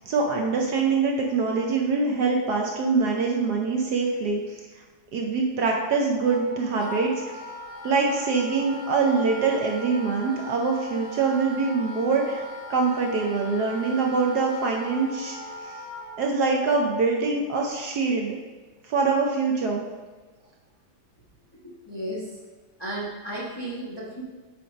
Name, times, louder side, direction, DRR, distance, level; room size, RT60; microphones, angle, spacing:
voice 1, 0.1-4.6 5.1-7.4 7.8-15.8 16.2-18.4 18.9-19.8, right 4 dB, 65° right, 0 dB, 1.1 m, -24 dB
Wind instrument woodwind instrument, 6.2-16.2, equal, 90° left, 1.6 m, -39 dB
voice 2, 21.6-22.4 22.8-24.2, right 1 dB, 15° left, -6 dB, 1.0 m, -34 dB
7.7 x 3.4 x 5.1 m, 1.3 s
omnidirectional pair, 2.1 m